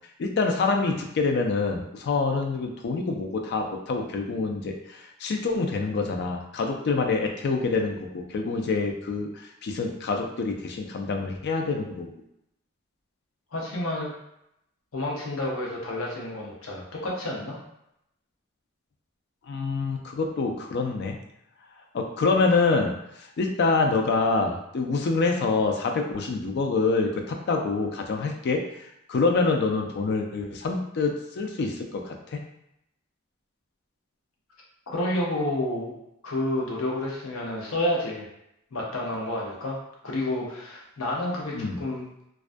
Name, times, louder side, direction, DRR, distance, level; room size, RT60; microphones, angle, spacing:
voice 1, 0.2-9.3 9.6-12.1 19.5-21.2 21.9-22.9 23.4-28.6 29.1-32.4 41.5-41.8, left 3 dB, 55° left, 3 dB, 0.4 m, -26 dB
voice 2, 13.5-14.1 14.9-17.6 34.9-35.9 36.2-38.2 38.7-39.8 40.0-42.1, left 1 dB, 85° left, -2 dB, 0.7 m, -29 dB
2.3 x 2.2 x 2.5 m, 0.81 s
head